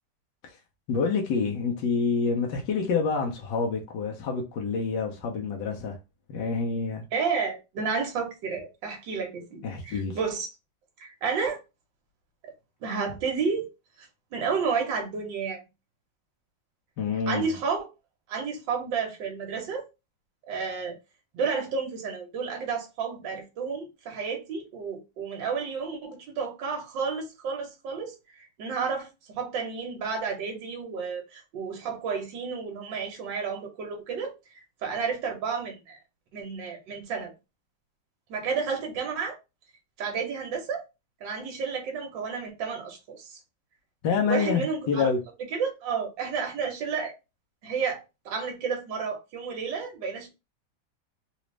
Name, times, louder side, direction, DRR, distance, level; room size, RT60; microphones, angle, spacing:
voice 1, 0.9-6.0 6.3-7.0 9.6-10.2 17.0-17.4 44.0-45.2, left 5 dB, 70° left, 1.4 m, -27 dB
voice 2, 7.1-10.5 11.0-11.6 12.4-12.5 12.8-13.7 14.0-15.6 17.3-17.9 18.3-19.8 20.5-21.0 21.3-36.0 36.3-37.3 38.3-39.4 40.0-40.9 41.2-43.4 44.3-45.1 45.5-47.1 47.6-50.3, right 5 dB, 70° right, 1.7 m, -31 dB
4.0 x 2.5 x 3.2 m
omnidirectional pair, 2.1 m